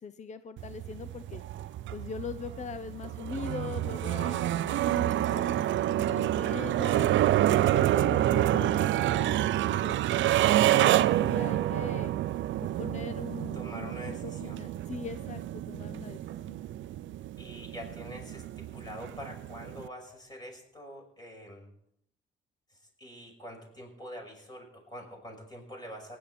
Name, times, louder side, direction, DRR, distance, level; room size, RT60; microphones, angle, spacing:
voice 1, 0.0-1.4 1.9-7.1 7.5-9.9 10.3-10.4 10.7-12.1 12.8-16.2 16.5-16.6, left 6 dB, 35° left, 12 dB, 0.7 m, -41 dB
sound 1, 0.6-19.9, right 13 dB, 70° right, 0.5 m, -28 dB
voice 2, 13.5-14.6 17.4-21.7 23.0-26.2, equal, 20° left, 0 dB, 6.0 m, -45 dB
19.0 x 10.5 x 4.3 m, 0.73 s
cardioid pair, 90°, 20 cm